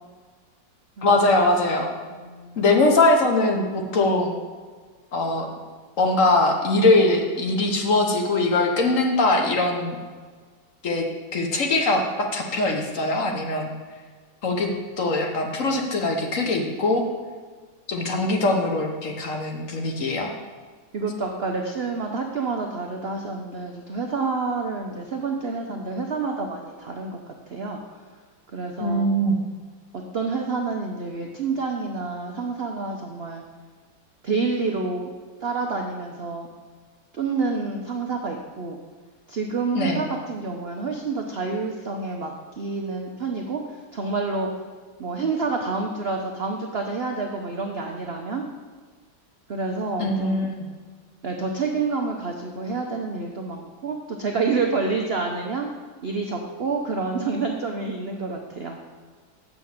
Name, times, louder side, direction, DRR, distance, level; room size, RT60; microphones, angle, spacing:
voice 1, 1.0-1.9 2.6-4.3 5.1-5.5 6.0-10.0 10.8-11.1 11.3-13.7 14.4-14.7 15.0-17.0 17.9-20.3 28.8-29.4 39.7-40.0 50.0-50.7, left 2 dB, 50° left, 2 dB, 1.1 m, -21 dB
voice 2, 2.1-2.6 20.9-27.2 27.5-27.8 28.5-29.1 29.9-33.4 34.2-35.1 35.4-36.5 37.1-38.8 39.3-44.5 45.0-48.4 49.5-50.5 51.2-55.7 56.0-58.8, right 4 dB, 85° right, 2 dB, 0.5 m, -28 dB
6.9 x 6.3 x 7.2 m, 1.5 s
omnidirectional pair, 2.1 m